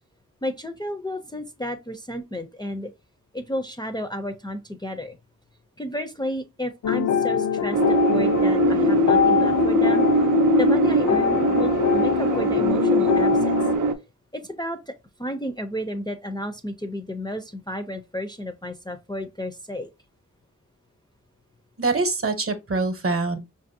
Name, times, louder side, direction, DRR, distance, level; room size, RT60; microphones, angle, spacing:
voice 1, 0.4-2.9 3.3-5.2 5.8-10.1 10.6-13.6 14.3-14.9 15.2-19.9, equal, 15° left, 0.4 m, -32 dB
sound 1, 6.8-13.8, left 8 dB, 75° left, 0.5 m, -22 dB
sound 2, 7.7-13.9, right 3 dB, 90° right, 0.5 m, -22 dB
voice 2, 21.8-23.4, right 3 dB, 45° right, 0.8 m, -24 dB
5.2 x 2.5 x 2.6 m
wide cardioid pair, 75°, 30 cm